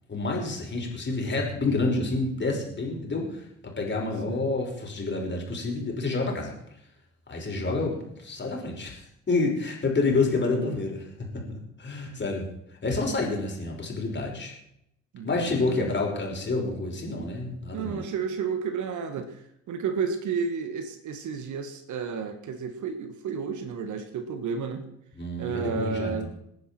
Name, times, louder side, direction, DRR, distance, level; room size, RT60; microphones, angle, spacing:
voice 1, 0.1-6.5 7.3-11.1 11.3-12.5 12.8-14.5 15.2-18.0 25.2-26.3, left 3 dB, 30° left, -1 dB, 5.7 m, -28 dB
voice 2, 15.1-15.9 17.7-24.9 25.4-26.3, right 6 dB, 50° right, 9 dB, 1.8 m, -32 dB
27.5 x 9.8 x 4.5 m, 0.77 s
figure-of-eight pair, 50°, 37 cm